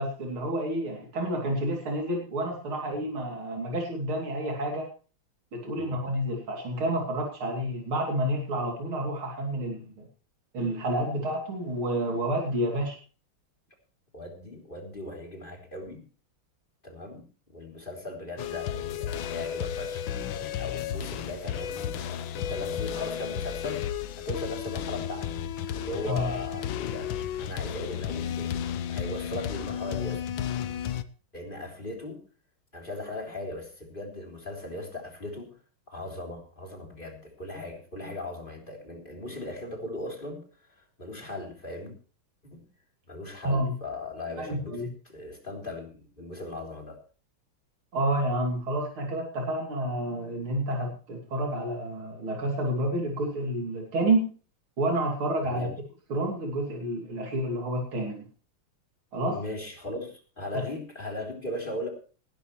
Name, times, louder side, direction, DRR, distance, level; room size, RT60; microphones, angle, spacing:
voice 1, 0.0-4.9 5.5-10.1 10.5-13.0 26.1-26.3 43.4-43.7 44.4-44.9 47.9-54.2 54.8-55.7 56.1-58.2 59.1-59.4, right 1 dB, 80° right, 0 dB, 3.8 m, -29 dB
voice 2, 14.1-16.0 16.8-23.9 24.2-25.3 25.7-27.1 27.4-30.2 31.3-32.2 32.7-35.5 35.9-41.9 42.5-42.6 43.1-47.0 55.4-55.7 59.3-61.9, left 2 dB, 25° left, 1 dB, 3.5 m, -38 dB
sound 1, 18.4-31.0, left 9 dB, 70° left, 1.5 m, -33 dB
19.0 x 12.5 x 3.1 m, 0.38 s
omnidirectional pair, 2.3 m